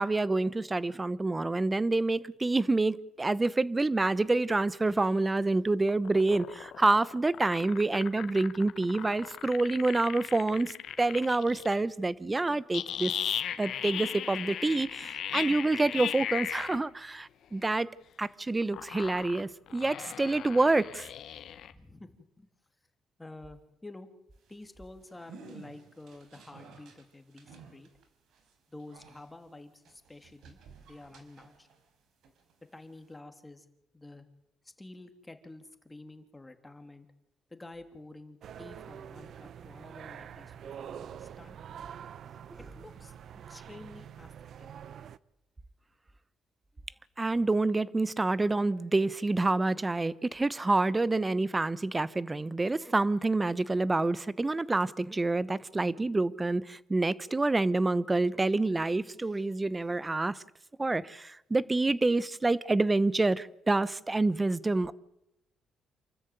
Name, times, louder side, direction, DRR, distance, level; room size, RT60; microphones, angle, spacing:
voice 1, 0.0-13.1 13.6-17.9 18.2-21.1 47.2-60.4 60.8-64.9, right 2 dB, 20° right, 1.0 m, -27 dB
sound 1, 5.7-11.8 12.7-16.8 18.6-21.7, left 10 dB, 70° left, 1.5 m, -37 dB
voice 2, 21.7-22.5 23.2-24.1 24.5-27.9 28.7-30.6 30.8-31.7 32.7-33.7 33.9-34.3 34.6-37.1 37.5-41.6 42.6-44.7, left 2 dB, 15° left, 2.9 m, -50 dB
sound 2, 24.3-31.9 32.2-33.2, right 4 dB, 80° right, 4.6 m, -55 dB
sound 3, 38.4-45.2, right 9 dB, 65° right, 0.8 m, -46 dB
28.0 x 13.5 x 9.3 m
cardioid pair, 90°, 0 cm